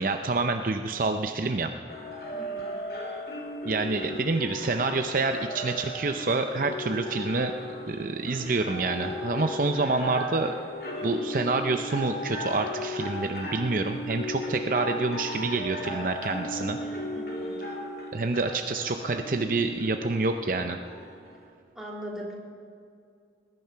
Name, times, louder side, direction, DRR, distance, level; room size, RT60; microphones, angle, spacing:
voice 1, 0.0-1.7 3.6-7.5 7.9-10.5 11.0-16.8 18.1-20.8, right 3 dB, 50° right, 6 dB, 0.6 m, -27 dB
sound 1, 1.9-21.5, equal, 60° left, 2.6 m, -36 dB
voice 2, 2.3-2.9 16.5-17.7 21.7-22.3, equal, 5° right, -5 dB, 3.0 m, -41 dB
19.5 x 11.0 x 5.7 m, 2.3 s
head